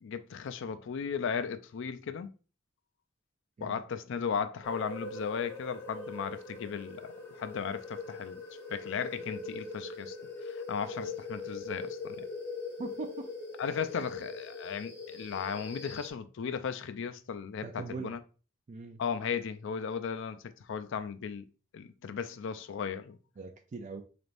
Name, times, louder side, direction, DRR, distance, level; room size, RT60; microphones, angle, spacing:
voice 1, 0.0-2.3 3.6-7.1 7.4-8.4 8.7-10.2 10.4-12.3 13.6-18.2 19.0-23.2, left 6 dB, 65° left, 0.4 m, -36 dB
sound 1, 4.6-16.1, left 3 dB, 10° left, 0.8 m, -42 dB
voice 2, 12.8-13.3 17.6-18.1 18.7-19.0 23.4-24.0, right 4 dB, 35° right, 0.4 m, -41 dB
4.0 x 3.4 x 2.5 m
head